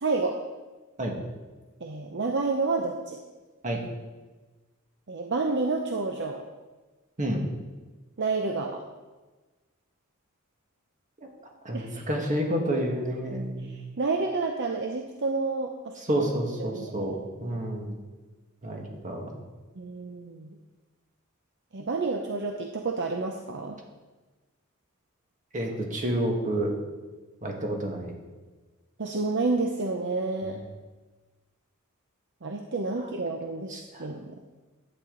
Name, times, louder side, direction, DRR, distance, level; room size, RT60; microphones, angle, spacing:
voice 1, 0.0-0.4 1.8-3.2 5.1-6.4 8.2-8.8 11.7-12.0 13.6-16.3 16.6-17.2 19.8-20.5 21.7-23.8 29.0-30.6 32.4-34.4, right 3 dB, 55° right, 3 dB, 0.7 m, -29 dB
voice 2, 11.7-13.7 16.1-18.0 18.6-19.4 25.5-26.7 27.4-28.1 30.4-30.5 33.7-34.1, right 1 dB, 35° right, 1 dB, 1.7 m, -29 dB
11.0 x 8.8 x 3.9 m, 1.2 s
head